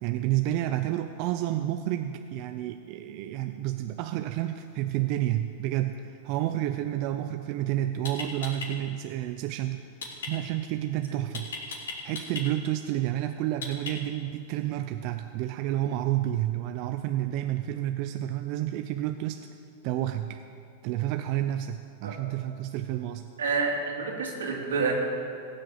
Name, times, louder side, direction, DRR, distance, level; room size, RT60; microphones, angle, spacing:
voice 1, 0.0-9.8 10.3-11.5 12.0-19.5 19.8-20.4 20.8-23.3, right 13 dB, 50° right, 7 dB, 0.5 m, -30 dB
sound 1, 7.4-7.6 8.0-8.7 10.0-10.3 11.3-12.4 13.6-14.2, left 4 dB, 85° left, 4.0 m, -36 dB
voice 2, 23.4-24.9, right 4 dB, 90° right, -1 dB, 2.8 m, -28 dB
17.0 x 6.6 x 7.6 m, 2.6 s
hypercardioid pair, 120°, 0 cm